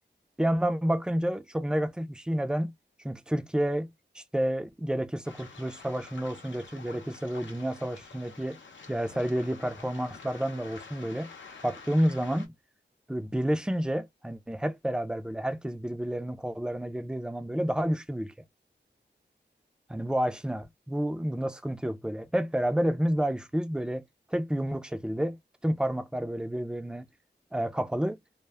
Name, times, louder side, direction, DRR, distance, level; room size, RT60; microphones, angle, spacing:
voice 1, 0.4-2.7 3.0-8.6 8.9-11.3 11.6-12.5 13.1-18.3 19.9-24.0 24.3-27.1 27.5-28.2, equal, 5° right, 0.4 m, -30 dB
Waves surf, 5.2-12.5, left 4 dB, 90° left, 0.6 m, -48 dB
2.1 x 2.0 x 3.2 m
wide cardioid pair, 90°, 19 cm